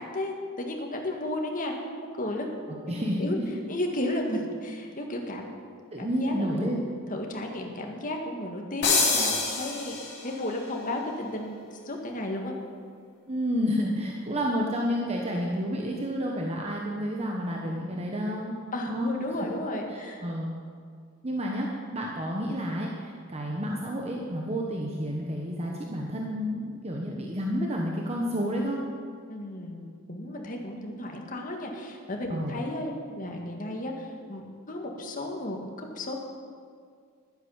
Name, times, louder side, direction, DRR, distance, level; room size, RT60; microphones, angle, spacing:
voice 1, 0.0-1.7 2.1-2.5 2.9-3.4 3.7-5.5 6.0-6.8 7.1-10.0 10.2-11.6 11.9-12.5 18.7-20.2 29.3-36.1, left 1 dB, 40° left, 1 dB, 1.8 m, -33 dB
voice 2, 2.9-3.4 5.9-6.8 13.3-18.6 18.9-19.5 19.9-20.5 21.2-28.8 32.3-32.6, equal, 30° right, -1 dB, 1.2 m, -30 dB
sound 1, 8.8-10.5, left 4 dB, 55° left, 3.6 m, -26 dB
12.0 x 9.9 x 7.2 m, 2.1 s
head